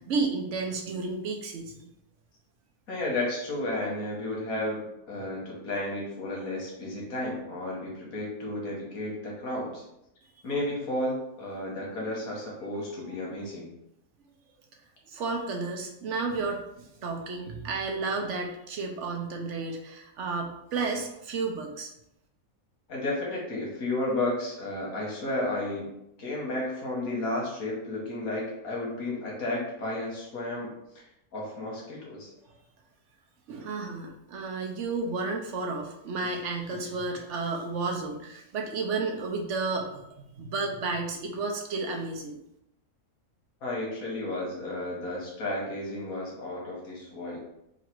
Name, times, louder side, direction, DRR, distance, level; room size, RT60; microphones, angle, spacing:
voice 1, 0.0-1.9 15.1-21.9 33.5-42.4, right 3 dB, 65° right, 2 dB, 0.9 m, -32 dB
voice 2, 2.9-4.8 5.1-9.8 10.4-13.7 22.9-25.9 26.2-30.7 31.3-32.3 43.6-47.4, left 1 dB, 90° left, -3 dB, 1.7 m, -32 dB
3.9 x 2.5 x 4.5 m, 0.82 s
omnidirectional pair, 1.5 m